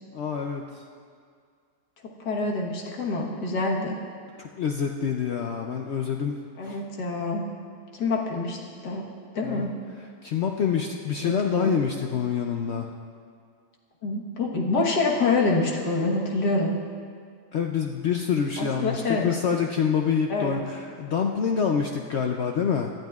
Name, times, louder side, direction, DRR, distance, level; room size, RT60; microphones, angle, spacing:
voice 1, 0.1-0.8 4.4-6.4 6.6-6.8 9.4-9.7 10.2-12.9 17.5-22.9, left 7 dB, 70° left, 2 dB, 0.6 m, -26 dB
voice 2, 2.2-4.0 6.6-7.4 7.9-9.1 9.3-9.8 11.2-11.7 14.0-16.8 18.6-19.4 20.3-20.6, left 3 dB, 90° left, -1 dB, 1.9 m, -26 dB
18.0 x 12.0 x 2.4 m, 2.1 s
omnidirectional pair, 1.7 m